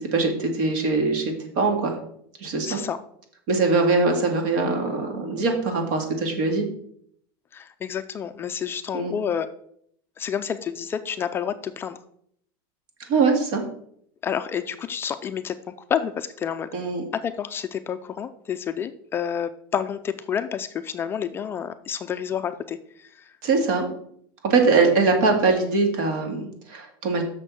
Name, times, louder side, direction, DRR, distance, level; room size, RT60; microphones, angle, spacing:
voice 1, 0.0-2.0 2.4-2.8 3.5-6.6 8.9-9.1 13.1-13.6 16.7-17.0 23.4-23.9 24.4-27.2, right 4 dB, 60° right, 3 dB, 2.3 m, -22 dB
voice 2, 2.6-3.0 7.5-9.5 10.2-12.0 14.2-15.5 15.9-16.7 17.2-23.4, left 8 dB, 20° left, 9 dB, 0.4 m, -29 dB
6.6 x 6.4 x 6.2 m, 0.68 s
supercardioid pair, 160°, 12 cm